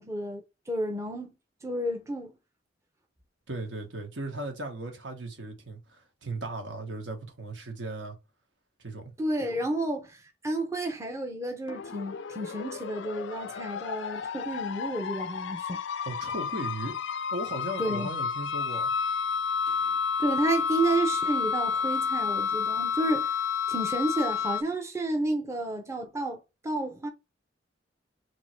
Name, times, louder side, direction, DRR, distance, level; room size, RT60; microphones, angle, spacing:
voice 1, 0.0-1.3 1.6-2.3 9.2-15.8 17.8-18.1 20.2-23.4 23.7-27.1, right 1 dB, 15° right, 0.7 m, -31 dB
voice 2, 3.5-8.2 8.8-9.1 16.0-17.0 17.3-18.9, right 2 dB, 70° right, 1.3 m, -37 dB
sound 1, 11.7-24.6, left 6 dB, 70° left, 0.4 m, -30 dB
3.6 x 3.1 x 4.4 m
head